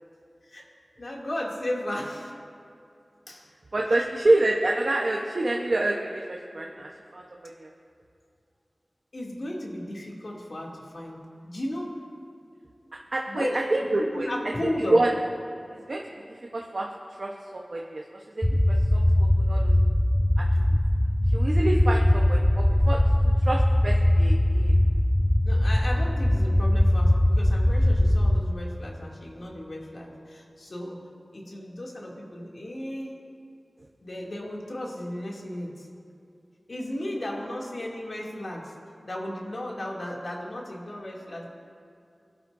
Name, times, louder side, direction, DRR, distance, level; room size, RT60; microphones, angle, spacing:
voice 1, 1.0-2.3 3.3-3.5 3.9-4.0 9.1-11.9 13.3-13.6 14.1-15.0 25.5-31.0 31.3-33.2 34.0-35.9 36.7-38.7 39.0-41.5, left 1 dB, 70° left, -3 dB, 2.7 m, -35 dB
voice 2, 3.7-7.2 7.6-7.7 13.1-14.3 14.8-15.1 15.9-16.0 16.5-16.9 17.2-18.0 18.4-18.5 18.9-19.0 19.5-19.7 21.3-22.4 22.9-23.0 23.4-24.7, right 2 dB, 70° right, -1 dB, 1.1 m, -26 dB
sound 1, 18.4-28.4, left 1 dB, 15° left, 0.5 m, -21 dB
23.0 x 11.5 x 2.7 m, 2.5 s
wide cardioid pair, 50°, 0 cm